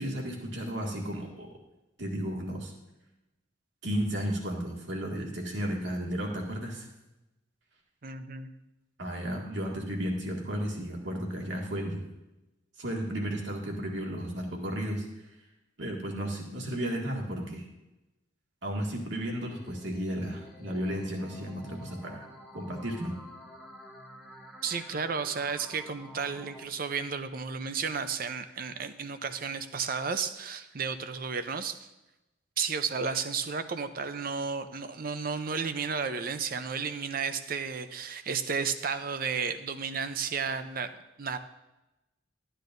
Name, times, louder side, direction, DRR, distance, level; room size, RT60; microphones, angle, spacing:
voice 1, 0.0-1.5 2.0-2.7 3.8-6.9 9.0-12.0 12.8-15.0 15.8-17.7 18.6-22.3 22.5-23.1, equal, 70° right, 0 dB, 2.0 m, -33 dB
voice 2, 8.0-8.5 24.6-31.8 32.6-41.4, right 5 dB, 50° right, 10 dB, 0.6 m, -33 dB
sound 1, 19.5-26.7, equal, 5° right, 1.6 m, -49 dB
12.5 x 10.0 x 2.6 m, 0.97 s
head